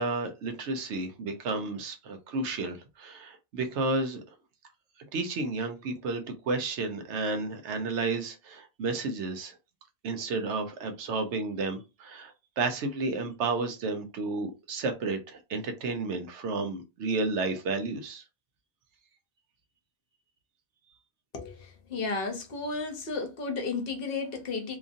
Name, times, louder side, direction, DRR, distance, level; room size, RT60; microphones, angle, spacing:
voice 1, 0.0-4.2 5.1-9.6 10.0-18.2, right 3 dB, 85° right, 1.0 m, -32 dB
voice 2, 21.3-24.8, left 4 dB, 60° left, 0.9 m, -33 dB
2.9 x 2.5 x 2.5 m
omnidirectional pair, 1.2 m